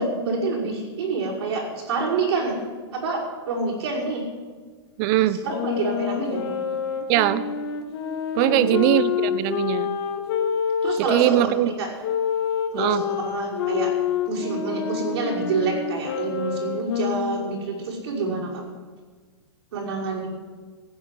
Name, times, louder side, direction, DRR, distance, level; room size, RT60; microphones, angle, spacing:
voice 1, 0.0-2.6 2.9-4.3 5.2-6.6 8.4-8.8 10.8-11.9 12.7-13.9 14.3-18.6 19.7-20.3, right 3 dB, 75° right, -5 dB, 5.6 m, -27 dB
voice 2, 5.0-5.4 7.1-7.4 8.3-9.9 11.1-11.7 12.7-13.0, right 13 dB, 45° right, 16 dB, 0.9 m, -21 dB
sound 1, 5.5-11.3 12.0-17.6, left 7 dB, 60° left, 2.1 m, -27 dB
15.5 x 7.3 x 9.3 m, 1.4 s
hypercardioid pair, 130°, 14 cm